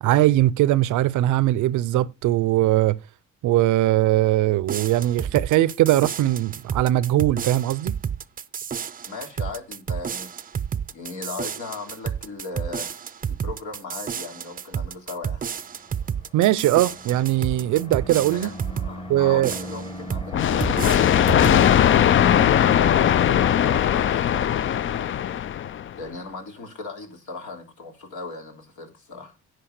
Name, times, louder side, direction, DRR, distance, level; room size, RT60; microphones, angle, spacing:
voice 1, 0.0-3.0 3.4-7.9 16.3-18.5 19.1-19.5, right 15 dB, 80° right, 0.6 m, -20 dB
sound 1, 4.6-19.0 19.4-20.3 20.6-21.6, right 7 dB, 30° right, 0.5 m, -31 dB
voice 2, 9.1-10.3 10.9-13.0 13.3-15.5 18.3-18.5 18.8-22.7 23.1-25.0 25.9-29.3, left 3 dB, 75° left, 3.1 m, -37 dB
sound 2, 15.8-23.2, left 1 dB, 20° left, 1.3 m, -36 dB
sound 3, 20.3-25.9, left 10 dB, 45° left, 0.4 m, -19 dB
10.5 x 4.7 x 6.5 m
cardioid pair, 90°, 30 cm